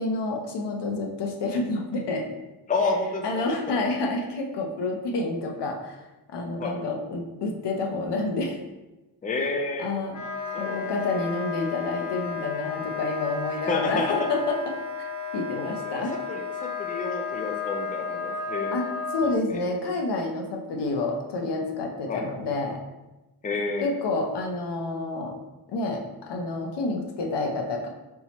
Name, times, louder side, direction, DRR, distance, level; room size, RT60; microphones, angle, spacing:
voice 1, 0.0-2.2 3.2-6.0 6.3-8.6 9.8-10.2 10.6-14.6 15.0-15.1 15.3-16.2 18.7-22.8 23.8-25.4 25.7-27.9, left 2 dB, 85° left, 1 dB, 0.8 m, -29 dB
voice 2, 2.7-3.8 6.6-6.8 9.2-9.9 10.5-11.2 13.7-14.3 15.6-18.8 22.1-22.2 23.4-23.9, left 3 dB, 20° left, 2 dB, 0.5 m, -30 dB
Wind instrument woodwind instrument, 10.1-19.3, left 5 dB, 45° left, 0.8 m, -33 dB
3.7 x 3.0 x 4.0 m, 1.1 s
wide cardioid pair, 140°, 40 cm